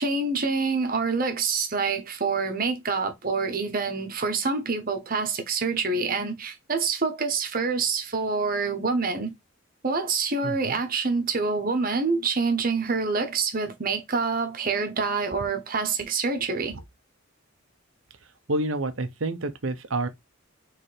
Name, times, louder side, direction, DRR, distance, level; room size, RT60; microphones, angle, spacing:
voice 1, 0.0-9.3 9.8-16.7, right 4 dB, 45° right, 1.0 m, -26 dB
voice 2, 10.4-10.8 16.7-16.8 18.5-20.1, right 2 dB, 75° right, 0.8 m, -28 dB
4.3 x 3.5 x 3.2 m
head